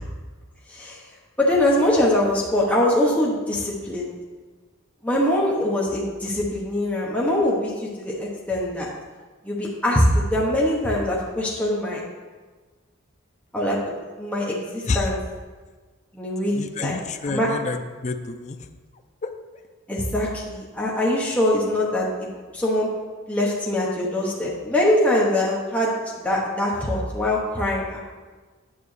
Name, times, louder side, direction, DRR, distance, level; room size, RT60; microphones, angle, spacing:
voice 1, 1.4-4.1 5.0-7.7 8.0-8.9 9.4-12.0 13.5-13.8 14.2-15.2 16.1-17.0 17.2-17.5 19.9-22.1 22.5-22.9 23.3-25.9 26.2-28.0, left 1 dB, 5° left, -5 dB, 1.0 m, -23 dB
voice 2, 16.6-18.6 19.2-19.3, left 3 dB, 35° left, 7 dB, 0.4 m, -28 dB
9.2 x 7.6 x 3.3 m, 1.4 s
head